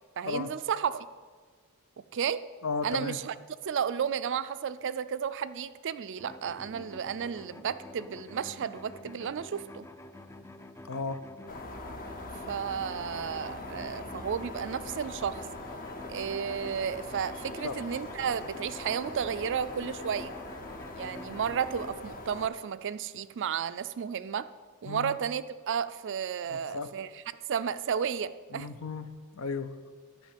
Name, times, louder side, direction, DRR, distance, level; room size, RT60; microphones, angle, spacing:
voice 1, 0.2-1.1 2.1-2.4 2.8-3.3 3.6-9.9 12.5-15.4 16.1-20.3 21.0-24.5 24.8-27.2 27.5-28.7, right 7 dB, 55° right, 14 dB, 0.4 m, -33 dB
voice 2, 2.6-3.2 10.8-11.2 17.6-17.7 24.9-25.2 26.5-26.9 28.5-29.0 29.3-29.7, left 4 dB, 65° left, 12 dB, 0.6 m, -34 dB
sound 1, 6.2-21.9, left 2 dB, 10° left, 0.4 m, -47 dB
sound 2, 11.5-22.5, left 2 dB, 40° left, 0.8 m, -42 dB
10.5 x 5.7 x 8.5 m, 1.5 s
head